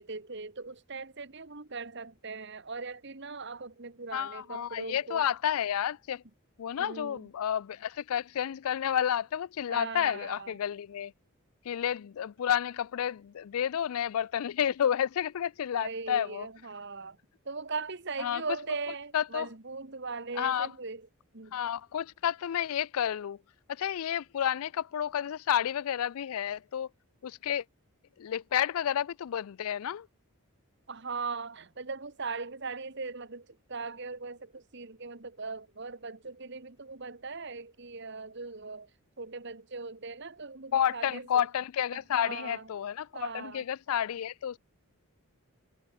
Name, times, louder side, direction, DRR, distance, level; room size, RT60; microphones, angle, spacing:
voice 1, 0.0-5.2 6.8-7.3 9.7-10.5 15.7-17.2 17.4-21.1 21.3-21.6 30.9-38.9 39.2-41.3 41.9-42.7 43.1-43.7, right 4 dB, 50° right, 1.4 m, -39 dB
voice 2, 4.1-6.2 6.6-11.1 11.6-16.5 18.2-18.4 19.1-19.5 20.4-20.7 21.5-23.4 23.7-26.9 27.2-27.6 28.2-30.1 40.7-44.6, left 9 dB, 75° left, 0.4 m, -30 dB
head